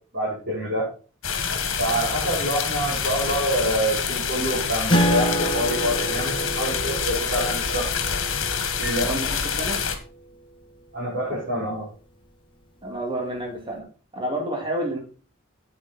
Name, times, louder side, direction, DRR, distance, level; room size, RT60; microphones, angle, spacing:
voice 1, 0.1-0.9 1.8-7.9 8.8-9.1 10.9-11.9, right 1 dB, 55° right, -9 dB, 5.5 m, -26 dB
sound 1, 1.2-10.0, left 6 dB, 70° left, 1.7 m, -27 dB
Acoustic guitar, 4.9-9.9, right 1 dB, 25° left, 1.2 m, -27 dB
voice 2, 12.8-13.9 14.1-15.0, right 1 dB, 25° right, 0 dB, 2.7 m, -29 dB
8.6 x 8.5 x 4.4 m, 0.39 s
head